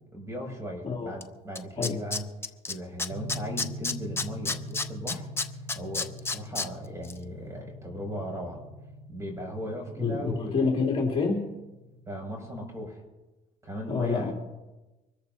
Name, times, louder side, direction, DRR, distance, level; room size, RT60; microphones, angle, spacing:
voice 1, 0.1-2.3 2.7-5.3 5.7-8.6 9.1-10.7 12.1-13.0 13.6-14.3, equal, 15° right, 1 dB, 6.6 m, -37 dB
Tools, 1.2-1.3 1.6-2.7 3.0-6.7 7.0-7.1, left 3 dB, 15° left, 0.7 m, -30 dB
sound 1, 3.1-12.8, equal, 80° right, 1.3 m, -43 dB
voice 2, 10.0-11.5 13.9-14.3, left 4 dB, 35° left, -2 dB, 2.9 m, -27 dB
25.0 x 14.0 x 2.8 m, 1.1 s
cardioid pair, 110°, 17 cm